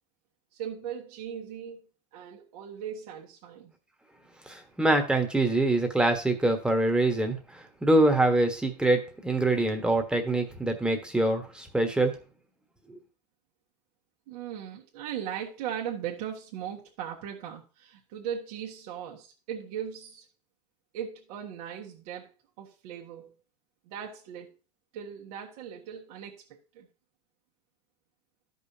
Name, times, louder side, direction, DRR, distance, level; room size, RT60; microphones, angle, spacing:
voice 1, 0.5-1.8 2.1-3.7 14.3-20.2 20.9-23.3 23.8-24.6 24.9-26.4 26.7-26.9, right 9 dB, 65° right, -2 dB, 1.5 m, -38 dB
voice 2, 4.5-12.1, right 2 dB, 5° right, 4 dB, 1.4 m, -25 dB
13.0 x 5.4 x 2.8 m, 0.33 s
supercardioid pair, 125°, 21 cm